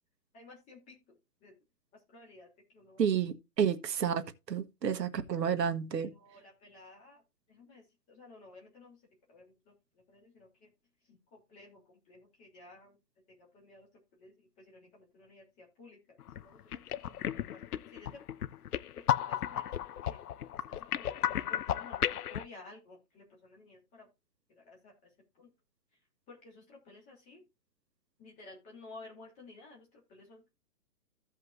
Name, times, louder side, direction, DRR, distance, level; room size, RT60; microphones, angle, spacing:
voice 1, 0.3-1.5 2.1-2.5 2.7-3.1 6.0-7.2 7.5-9.0 9.3-9.7 10.1-10.7 11.1-13.0 13.4-18.2 19.1-20.2 20.7-24.1 24.5-24.9 25.3-25.5 26.3-27.4 28.2-30.4, left 2 dB, 15° left, 3.2 m, -54 dB
voice 2, 3.0-6.1, right 8 dB, 90° right, 1.4 m, -31 dB
sound 1, 16.2-16.4 16.7-22.4, left 10 dB, 65° left, 0.7 m, -34 dB
15.5 x 5.4 x 2.6 m
hypercardioid pair, 165°, 48 cm